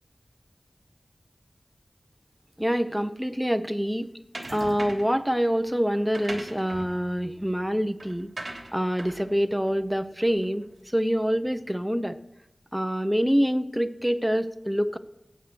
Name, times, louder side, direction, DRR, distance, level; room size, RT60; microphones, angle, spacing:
voice 1, 2.6-4.1 4.5-8.3 8.7-10.7 10.9-12.2 12.7-15.0, equal, 5° right, 10 dB, 0.9 m, -26 dB
sound 1, 4.3-5.2 5.9-10.6, right 2 dB, 50° right, 3.1 m, -41 dB
17.5 x 8.0 x 6.1 m, 0.85 s
wide cardioid pair, 60°, 0 cm